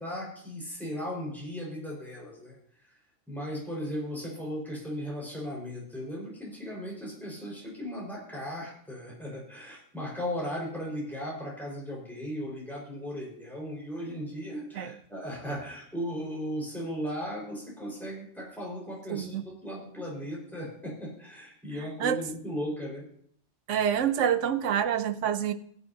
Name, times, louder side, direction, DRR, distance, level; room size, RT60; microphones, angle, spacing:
voice 1, 0.0-2.9 3.3-23.0, equal, ahead, -4 dB, 4.8 m, -37 dB
voice 2, 19.1-19.4 22.0-22.2 23.7-25.5, right 9 dB, 70° right, 11 dB, 1.0 m, -27 dB
21.0 x 8.1 x 2.8 m, 0.65 s
omnidirectional pair, 1.3 m